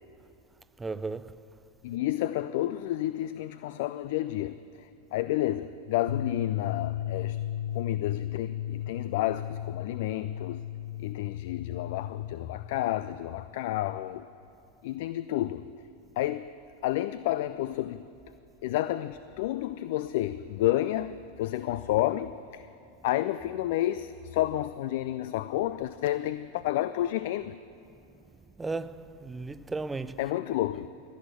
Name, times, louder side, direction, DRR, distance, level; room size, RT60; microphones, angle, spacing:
voice 1, 0.8-1.4 28.6-30.2, right 3 dB, 15° right, 0.4 m, -35 dB
voice 2, 1.8-7.4 7.7-10.6 11.0-14.3 14.8-15.7 16.2-16.5 16.8-18.1 18.6-22.7 23.0-27.6 30.2-30.9, left 14 dB, 60° left, 0.3 m, -30 dB
sound 1, 6.1-12.3, left 11 dB, 80° left, 0.8 m, -34 dB
15.0 x 6.4 x 9.0 m
hypercardioid pair, 90°, 0 cm